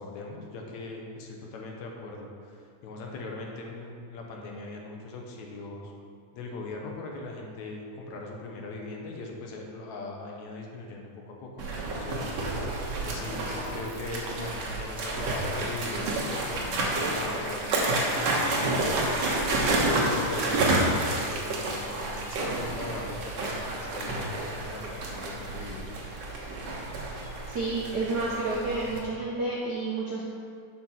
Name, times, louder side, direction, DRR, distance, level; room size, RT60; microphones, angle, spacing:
voice 1, 0.0-5.9 6.3-12.3 13.0-18.0 18.5-24.2 24.5-26.1, left 3 dB, 70° left, 0 dB, 2.3 m, -40 dB
sound 1, 11.6-29.0, right 2 dB, 60° right, 2.2 m, -29 dB
voice 2, 27.5-30.2, right 3 dB, 85° right, -4 dB, 0.9 m, -30 dB
9.8 x 5.9 x 5.8 m, 2.3 s
omnidirectional pair, 3.5 m